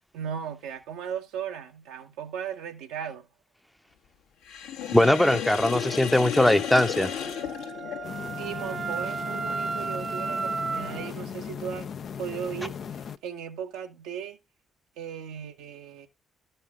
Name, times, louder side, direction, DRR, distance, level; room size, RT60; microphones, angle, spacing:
voice 1, 0.1-3.3 8.4-11.9 12.2-14.4 15.0-16.1, right 8 dB, 65° right, 0.9 m, -37 dB
Sink (filling or washing), 4.4-8.4, left 9 dB, 65° left, 1.0 m, -33 dB
voice 2, 4.9-7.1, left 1 dB, 5° left, 0.7 m, -21 dB
Wind instrument woodwind instrument, 6.4-11.1, right 5 dB, 40° right, 0.6 m, -34 dB
sound 1, 8.0-13.2, left 7 dB, 50° left, 0.5 m, -38 dB
12.5 x 5.5 x 3.6 m
figure-of-eight pair, 45°, 0 cm